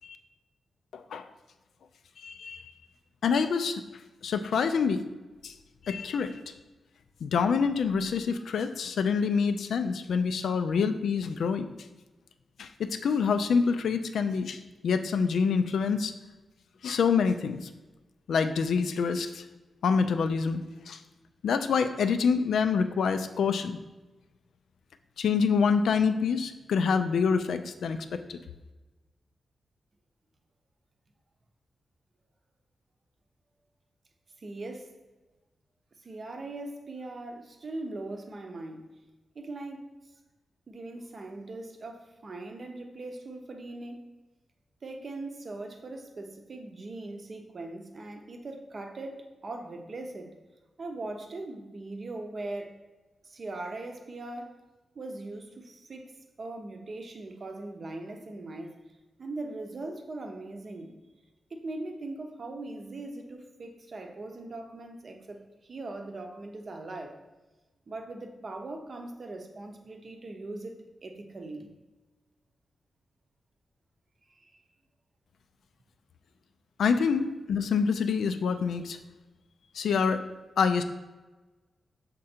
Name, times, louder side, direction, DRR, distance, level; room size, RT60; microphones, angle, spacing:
voice 1, 0.9-1.3 2.2-2.7 3.2-3.8 4.2-5.0 5.4-5.5 5.9-6.3 7.2-11.7 12.6-16.1 16.8-17.7 18.3-19.4 19.8-21.0 21.4-23.8 25.2-28.4 76.8-79.0 79.7-80.2 80.6-80.8, left 5 dB, 85° left, 9 dB, 0.4 m, -26 dB
voice 2, 34.4-34.9 36.0-39.0 39.3-40.0 40.7-44.0 44.8-50.4 50.8-52.8 53.2-54.6 54.9-56.1 56.4-58.8 59.2-60.9 61.5-67.2 67.9-71.7 74.3-74.6, right 2 dB, 35° right, 4 dB, 0.6 m, -40 dB
6.5 x 3.7 x 4.3 m, 1.2 s
wide cardioid pair, 175°, 0 cm